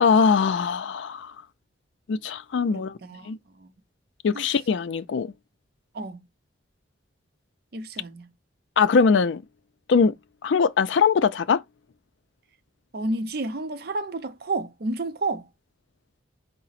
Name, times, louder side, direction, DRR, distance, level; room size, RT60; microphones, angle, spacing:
voice 1, 0.0-1.3 2.1-2.9 3.3-3.4 4.2-5.3 8.8-9.4 9.9-10.1 10.4-11.6, left 5 dB, 75° left, 0.4 m, -21 dB
voice 2, 2.7-3.3 3.6-3.7 4.3-4.5 5.9-6.2 7.7-8.3 12.9-15.5, right 2 dB, 55° right, 0.5 m, -31 dB
4.8 x 2.0 x 4.0 m
head